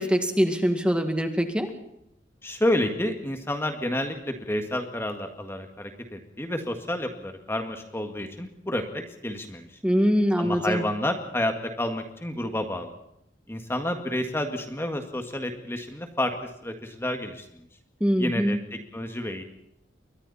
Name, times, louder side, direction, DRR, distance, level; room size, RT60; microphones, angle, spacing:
voice 1, 0.0-1.7 9.8-10.8 18.0-18.6, equal, 5° right, 6 dB, 2.0 m, -23 dB
voice 2, 2.4-9.7 10.4-12.9 13.5-16.3 16.6-17.4 18.2-19.4, left 1 dB, 15° left, 5 dB, 1.9 m, -30 dB
29.0 x 23.5 x 4.3 m, 0.79 s
head